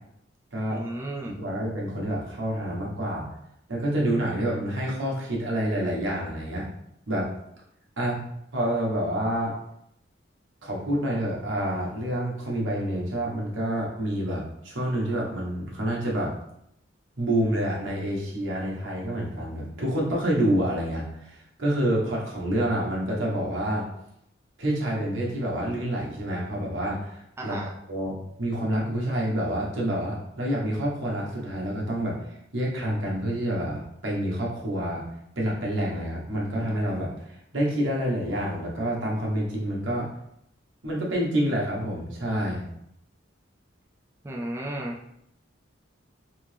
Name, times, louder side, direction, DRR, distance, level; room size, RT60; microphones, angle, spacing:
voice 1, 0.7-1.4 27.4-27.7 44.2-45.0, right 1 dB, 15° right, -2 dB, 0.3 m, -33 dB
voice 2, 1.3-3.3 3.7-6.7 7.1-7.3 8.0-8.2 8.5-9.5 10.6-16.3 17.2-23.9 24.6-27.6 27.9-32.2 32.5-35.0 35.4-37.1 37.5-40.1 40.8-42.6, right 1 dB, 75° right, -3 dB, 1.1 m, -28 dB
3.3 x 2.8 x 3.3 m, 0.76 s
head